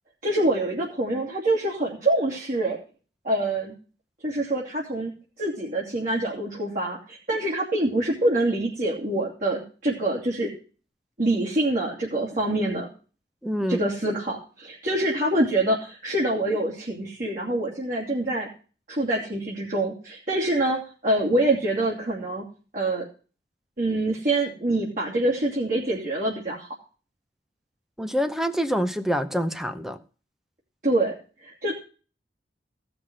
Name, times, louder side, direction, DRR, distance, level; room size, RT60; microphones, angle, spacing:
voice 1, 0.2-2.8 3.2-3.7 4.2-5.1 5.4-10.5 11.2-12.9 13.7-18.5 18.9-22.4 22.7-23.1 23.8-26.7 30.8-31.1 31.4-31.7, right 1 dB, 50° right, -6 dB, 2.8 m, -25 dB
voice 2, 13.4-13.8 28.0-30.0, equal, ahead, 11 dB, 0.7 m, -26 dB
16.0 x 6.0 x 6.2 m, 0.37 s
head